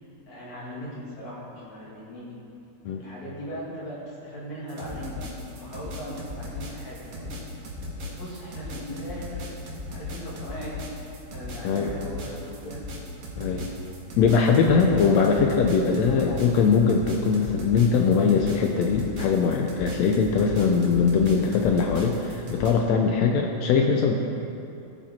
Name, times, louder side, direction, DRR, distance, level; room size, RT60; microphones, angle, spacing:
voice 1, 0.3-2.3 3.0-5.2 5.5-7.3 8.0-9.5 9.9-10.8 11.3-12.8 14.5-14.9 16.1-16.6 20.3-20.6, equal, 60° left, -6 dB, 3.6 m, -39 dB
sound 1, 4.7-22.7, left 2 dB, 50° right, 2.4 m, -37 dB
voice 2, 13.4-13.7 14.2-24.1, left 5 dB, 75° left, 2 dB, 1.6 m, -21 dB
16.0 x 7.2 x 4.3 m, 2.6 s
omnidirectional pair, 3.6 m